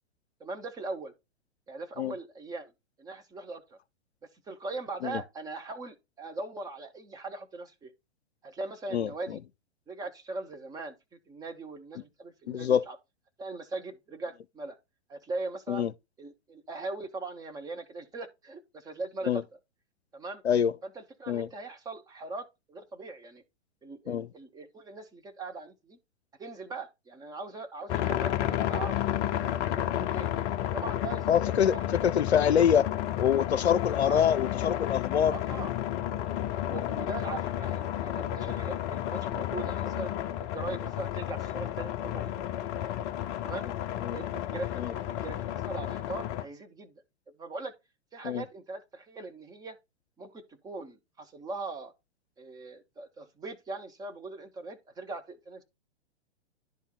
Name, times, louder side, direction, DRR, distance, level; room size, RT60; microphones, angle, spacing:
voice 1, 0.4-1.1 1.7-2.7 3.0-3.8 4.5-7.9 8.4-9.4 9.9-13.0 13.4-14.8 15.1-15.9 16.2-19.4 20.1-20.4 20.8-23.4 23.8-26.0 26.4-30.3 30.7-31.3 31.5-32.0 34.0-34.3 35.3-35.7 36.6-40.1 40.4-42.9 43.4-43.7 44.1-46.9 47.4-47.7 48.1-49.8 50.2-51.9 52.4-55.6, right 3 dB, 10° right, 0.7 m, -40 dB
voice 2, 8.9-9.4 12.5-12.8 15.7-15.9 19.3-19.4 20.4-20.7 21.3-21.5 24.1-24.3 31.3-31.8 32.0-32.9 33.2-35.4 36.7-36.8 44.0-44.2 44.7-44.9 48.2-48.4, left 8 dB, 65° left, 0.6 m, -25 dB
sound 1, 27.9-46.4, left 12 dB, 25° left, 0.6 m, -32 dB
10.5 x 3.6 x 4.3 m
figure-of-eight pair, 110°, 34 cm